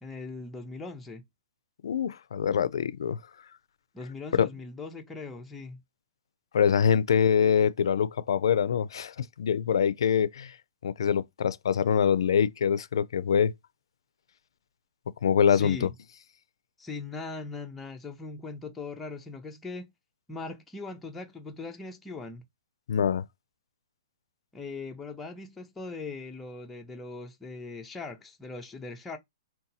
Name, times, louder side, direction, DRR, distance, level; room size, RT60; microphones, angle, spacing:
voice 1, 0.0-1.2 3.9-5.8 15.5-15.9 16.8-19.9 20.3-22.5 24.5-29.2, left 3 dB, 5° left, 0.4 m, -40 dB
voice 2, 1.8-3.2 4.4-4.5 6.5-10.6 10.8-13.5 15.2-15.9 22.9-23.2, left 7 dB, 75° left, 0.4 m, -24 dB
2.7 x 2.2 x 3.9 m
hypercardioid pair, 170°, 3 cm